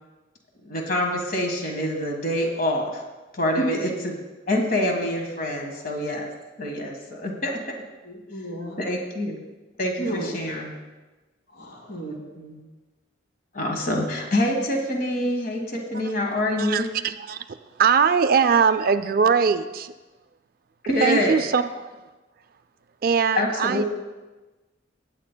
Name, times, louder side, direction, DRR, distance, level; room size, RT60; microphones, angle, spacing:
voice 1, 0.6-3.0 3.3-4.1 4.5-6.3 6.6-7.7 8.8-9.4 9.8-10.7 13.5-16.9 20.9-21.4 23.4-23.8, left 1 dB, 45° left, 2 dB, 1.5 m, -26 dB
voice 2, 8.0-8.8 10.0-10.6 11.6-12.6, right 1 dB, 60° left, -2 dB, 2.8 m, -33 dB
voice 3, 16.6-19.9 21.0-21.9 23.0-23.8, right 6 dB, 50° right, 11 dB, 0.4 m, -21 dB
19.0 x 9.2 x 2.2 m, 1.2 s
head